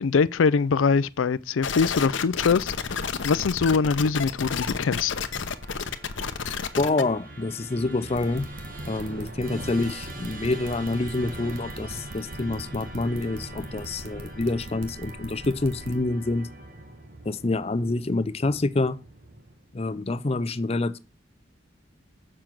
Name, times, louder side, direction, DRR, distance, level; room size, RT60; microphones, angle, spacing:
voice 1, 0.0-2.7 3.2-5.1, left 5 dB, 85° left, 0.5 m, -23 dB
sound 1, 1.6-7.0, left 6 dB, 70° left, 0.8 m, -30 dB
Musical instrument, 4.5-19.8, right 2 dB, 45° right, 1.7 m, -42 dB
voice 2, 6.8-8.5 8.9-16.5 17.3-19.0 19.7-21.0, left 2 dB, 30° left, 0.5 m, -27 dB
sound 2, 8.1-15.9, right 1 dB, 90° right, 1.6 m, -41 dB
7.4 x 6.9 x 6.0 m
head